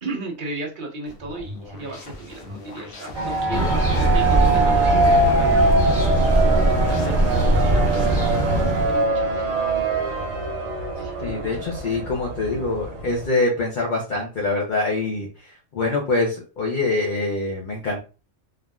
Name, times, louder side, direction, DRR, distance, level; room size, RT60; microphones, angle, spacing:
voice 1, 0.0-5.7 6.0-9.8 11.0-11.6, right 2 dB, 45° right, 0 dB, 0.8 m, -35 dB
sound 1, 1.1-9.1, left 2 dB, 85° left, 1.2 m, -39 dB
sound 2, 3.1-13.3, right 2 dB, 90° right, 1.2 m, -23 dB
sound 3, 3.5-9.0, right 1 dB, 10° left, 1.2 m, -20 dB
voice 2, 11.2-18.0, left 2 dB, 50° left, -1 dB, 0.6 m, -25 dB
3.3 x 2.5 x 2.2 m, 0.34 s
omnidirectional pair, 1.4 m